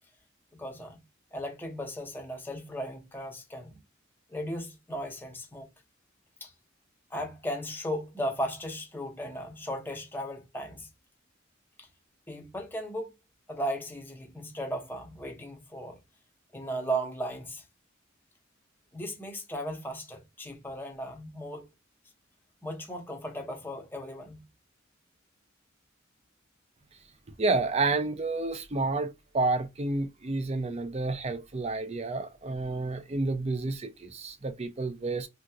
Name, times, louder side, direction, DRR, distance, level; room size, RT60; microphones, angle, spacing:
voice 1, 0.5-1.0 1.3-3.7 4.3-5.7 6.4-6.5 7.1-10.9 11.8-11.9 12.3-13.1 13.5-16.0 16.5-17.6 18.9-21.6 22.6-24.4, equal, 10° left, 0.8 m, -36 dB
voice 2, 27.4-35.3, right 3 dB, 35° right, 0.5 m, -30 dB
3.7 x 2.8 x 2.3 m
head